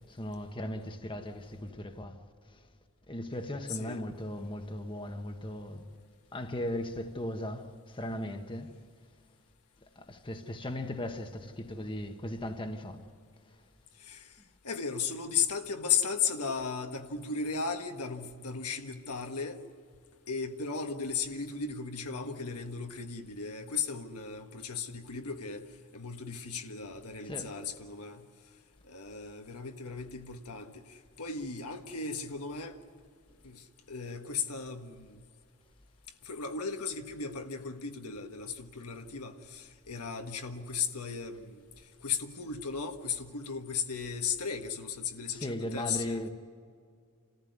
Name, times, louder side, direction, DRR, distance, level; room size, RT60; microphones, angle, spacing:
voice 1, 0.1-2.2 2.5-2.6 3.1-5.8 6.3-8.7 10.0-13.0 27.3-27.5 45.3-46.3, left 1 dB, 25° left, 1.2 m, -37 dB
voice 2, 3.7-4.0 14.0-14.3 14.6-19.6 20.3-25.6 25.9-28.2 28.9-32.8 33.4-35.2 36.2-41.6 42.0-46.3, left 6 dB, 80° left, 1.5 m, -36 dB
27.5 x 14.5 x 9.6 m
head